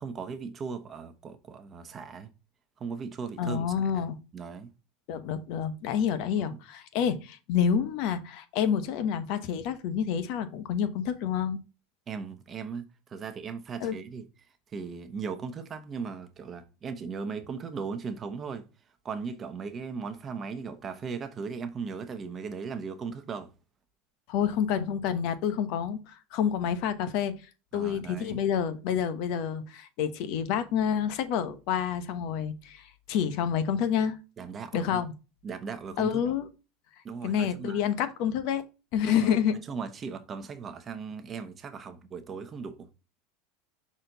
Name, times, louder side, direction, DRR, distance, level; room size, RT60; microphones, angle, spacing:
voice 1, 0.0-2.3 2.8-3.6 4.0-4.1 4.3-4.7 6.4-6.6 12.1-14.3 14.7-18.7 19.0-23.5 27.7-28.4 34.4-35.0 35.4-36.2 37.0-37.8 39.0-39.3 39.7-42.9, right 5 dB, 25° right, 1.0 m, -37 dB
voice 2, 3.4-4.2 5.1-11.6 13.8-14.0 24.3-27.3 27.7-34.2 34.7-35.1 36.0-36.5 37.2-38.6 38.9-39.6, left 8 dB, 60° left, 0.9 m, -28 dB
6.1 x 4.2 x 3.9 m
supercardioid pair, 135°, 0 cm